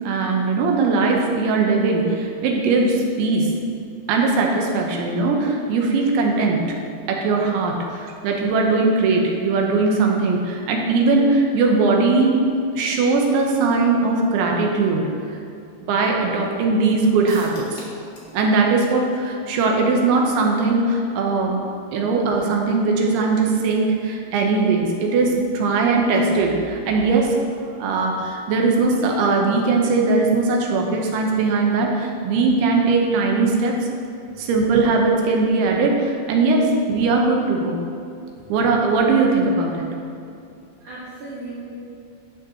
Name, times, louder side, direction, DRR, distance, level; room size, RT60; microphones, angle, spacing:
voice 1, 0.0-3.5 4.1-6.8 7.1-12.4 12.8-15.2 15.9-17.8 18.3-21.6 21.9-27.4 27.8-33.8 34.4-37.8 38.5-39.9, right 3 dB, 85° right, 1 dB, 3.3 m, -20 dB
sound 1, 17.3-18.4 18.6-18.7 19.1-19.2, left 2 dB, 55° left, 2.9 m, -43 dB
voice 2, 40.8-41.8, right 2 dB, 60° right, -8 dB, 2.3 m, -37 dB
12.0 x 8.3 x 2.9 m, 2.5 s
omnidirectional pair, 5.2 m